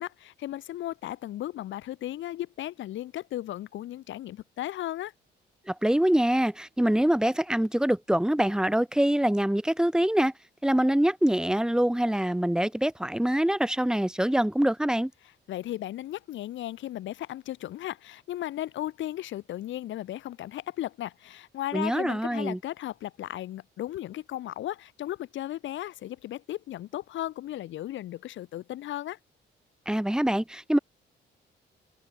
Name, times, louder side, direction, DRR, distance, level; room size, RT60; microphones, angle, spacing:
voice 1, 0.0-5.1 15.5-29.2, left 13 dB, 75° left, 0.9 m, -35 dB
voice 2, 5.7-10.3 10.6-15.1 21.7-22.6 29.9-30.8, right 1 dB, 5° right, 1.2 m, -24 dB
cardioid pair, 90°, 20 cm